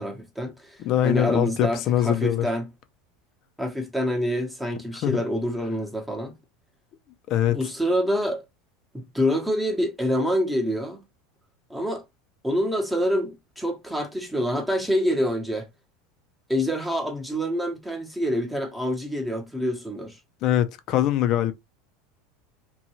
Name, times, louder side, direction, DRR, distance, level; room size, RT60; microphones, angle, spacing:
voice 1, 0.0-2.7 3.6-6.4 7.5-8.4 8.9-11.0 11.7-12.0 12.4-15.7 16.5-20.2, equal, 5° right, 0.9 m, -26 dB
voice 2, 0.8-2.5 5.0-5.2 7.3-7.6 20.4-21.5, left 12 dB, 50° left, 0.5 m, -22 dB
2.6 x 2.3 x 2.9 m
supercardioid pair, 105°, 0 cm